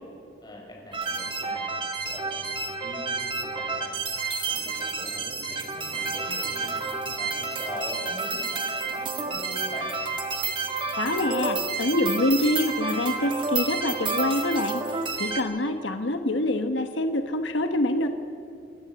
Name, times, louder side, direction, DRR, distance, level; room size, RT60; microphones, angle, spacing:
voice 1, 0.4-1.7 2.0-4.0 4.4-9.9, left 1 dB, 20° left, -2 dB, 5.5 m, -42 dB
sound 1, 0.9-15.4, right 4 dB, 25° right, 1.7 m, -30 dB
voice 2, 11.0-14.8 15.2-18.1, left 1 dB, 90° left, 7 dB, 1.2 m, -25 dB
28.5 x 11.5 x 8.0 m, 2.6 s
head